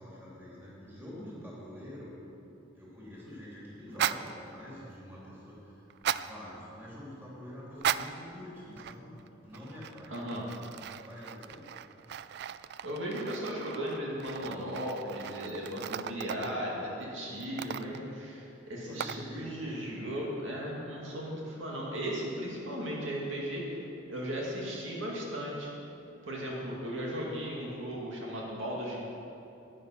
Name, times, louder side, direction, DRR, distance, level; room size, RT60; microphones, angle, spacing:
voice 1, 0.0-2.1 2.7-9.1 9.4-10.2 10.9-11.6 16.2-17.3 18.7-19.9, left 1 dB, 10° right, -7 dB, 3.4 m, -46 dB
sound 1, 3.9-4.3 5.9-6.3 7.7-8.2 8.8-9.3 9.5-16.6 17.4-18.1 19.0-19.3, right 10 dB, 60° right, 0.3 m, -37 dB
voice 2, 10.1-10.5 12.8-23.6 24.1-25.7 26.3-29.0, equal, 75° right, -3 dB, 2.1 m, -36 dB
11.0 x 10.0 x 5.9 m, 2.9 s
head